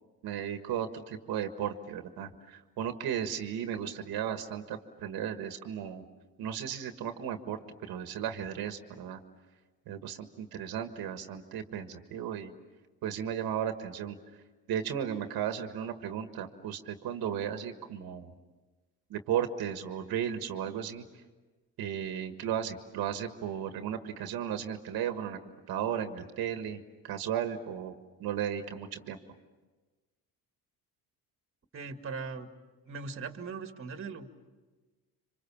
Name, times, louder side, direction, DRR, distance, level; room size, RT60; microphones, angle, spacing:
voice 1, 0.2-6.0 6.4-9.2 9.9-12.5 13.0-14.2 14.7-18.3 19.1-21.1 21.8-25.4 25.7-27.9 28.2-29.2, right 9 dB, 65° right, 7 dB, 1.7 m, -35 dB
voice 2, 31.7-32.5 32.9-34.5, right 4 dB, 35° right, 7 dB, 2.0 m, -40 dB
26.5 x 25.5 x 7.3 m, 1.3 s
cardioid pair, 105°, 39 cm